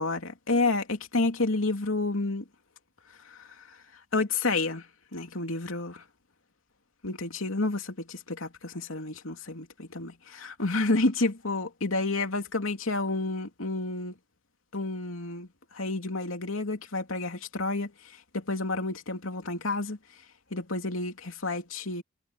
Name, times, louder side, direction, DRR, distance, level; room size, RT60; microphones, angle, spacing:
voice 1, 0.0-2.4 3.3-3.4 4.1-4.9 5.1-6.0 7.0-14.1 14.7-15.5 15.7-17.9 18.3-20.0 20.5-22.0, left 2 dB, 80° left, 2.9 m, -30 dB
head